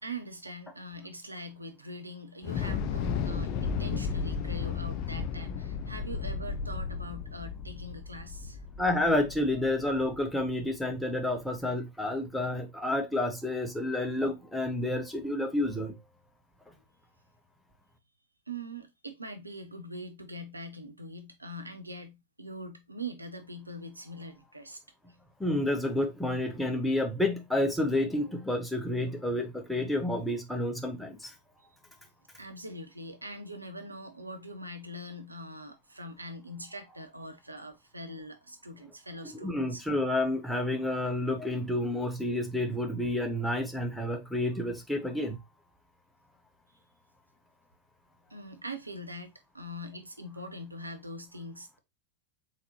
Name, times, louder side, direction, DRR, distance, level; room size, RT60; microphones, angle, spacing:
voice 1, 0.0-8.6 18.5-24.8 32.3-39.8 48.3-51.8, right 1 dB, 85° right, 0.8 m, -42 dB
Thunder / Explosion, 2.4-10.6, left 6 dB, 40° left, 0.6 m, -34 dB
voice 2, 8.8-15.9 25.4-31.3 39.3-45.4, left 1 dB, 5° left, 1.1 m, -30 dB
4.2 x 3.9 x 3.0 m
figure-of-eight pair, 90°, 0 cm